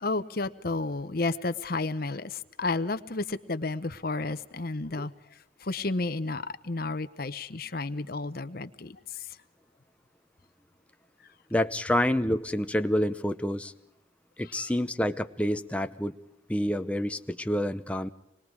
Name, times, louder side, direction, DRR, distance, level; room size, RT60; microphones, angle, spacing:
voice 1, 0.0-5.1 5.6-9.2 14.5-14.7, left 3 dB, 50° left, 11 dB, 0.9 m, -32 dB
voice 2, 11.5-13.7 14.4-16.2 16.5-18.1, left 1 dB, 5° left, 8 dB, 0.7 m, -28 dB
26.0 x 21.0 x 4.8 m, 0.81 s
head